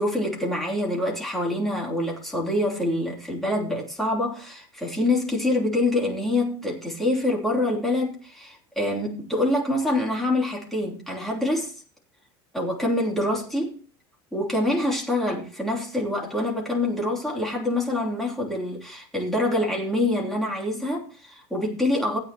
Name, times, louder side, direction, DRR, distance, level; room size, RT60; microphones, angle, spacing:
voice 1, 0.0-11.7 12.5-13.8 14.3-22.2, left 1 dB, 5° left, 3.2 m, -26 dB
16.5 x 8.9 x 3.0 m
supercardioid pair, 145°, 11 cm